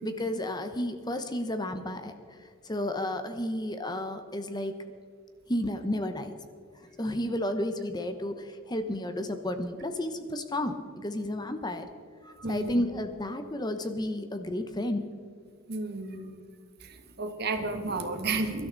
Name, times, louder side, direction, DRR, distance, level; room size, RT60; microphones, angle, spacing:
voice 1, 0.0-2.4 2.6-4.8 5.5-6.3 6.8-11.9 12.5-15.0, left 1 dB, 20° left, 8 dB, 0.9 m, -32 dB
voice 2, 12.2-12.9 15.7-16.3 16.8-18.7, right 3 dB, 50° right, 7 dB, 1.4 m, -33 dB
23.0 x 12.5 x 4.0 m, 2.2 s
head